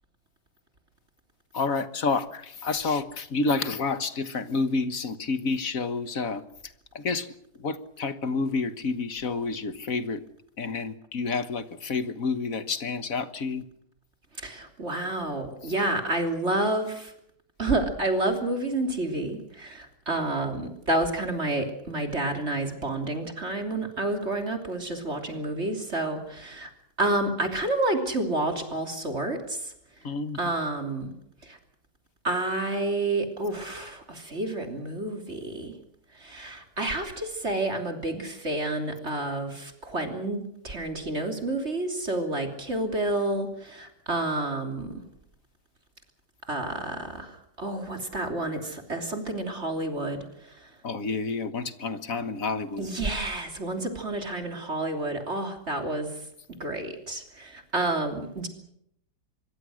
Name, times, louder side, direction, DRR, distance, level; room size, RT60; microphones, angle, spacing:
voice 1, 1.5-6.4 7.0-7.3 7.6-10.2 10.6-13.6 30.0-30.4 50.8-52.9, left 4 dB, 55° left, 12 dB, 1.8 m, -29 dB
voice 2, 14.3-17.1 17.6-26.7 27.0-29.7 30.3-31.1 31.4-31.6 32.2-35.8 36.1-45.0 46.5-50.8 52.8-56.3 56.6-58.5, right 2 dB, 40° right, 5 dB, 3.4 m, -29 dB
25.5 x 23.0 x 6.4 m, 0.75 s
omnidirectional pair, 1.7 m